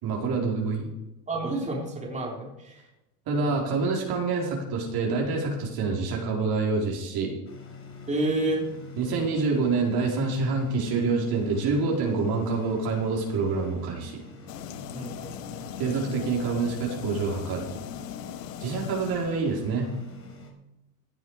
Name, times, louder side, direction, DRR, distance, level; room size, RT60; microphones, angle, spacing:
voice 1, 0.0-0.9 3.3-7.3 9.0-14.2 15.8-17.7 18.6-19.9, right 4 dB, 50° right, -1 dB, 4.5 m, -27 dB
voice 2, 1.3-2.9 3.3-3.6 8.1-8.6 14.9-15.7, right 2 dB, 15° right, -2 dB, 3.9 m, -30 dB
sound 1, 7.4-20.5, left 2 dB, 30° left, 4.4 m, -46 dB
sound 2, 14.5-19.8, left 12 dB, 90° left, 0.9 m, -39 dB
17.0 x 9.5 x 4.9 m, 0.96 s
supercardioid pair, 100°, 47 cm